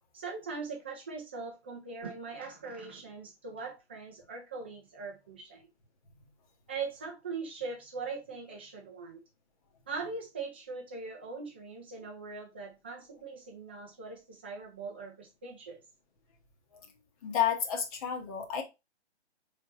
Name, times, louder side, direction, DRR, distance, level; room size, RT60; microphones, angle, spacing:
voice 1, 0.1-5.7 6.7-9.2 9.9-15.8, right 4 dB, 10° right, 0.4 m, -41 dB
voice 2, 17.2-18.6, left 9 dB, 30° left, 1.2 m, -30 dB
4.4 x 3.5 x 3.0 m
figure-of-eight pair, 140°, 34 cm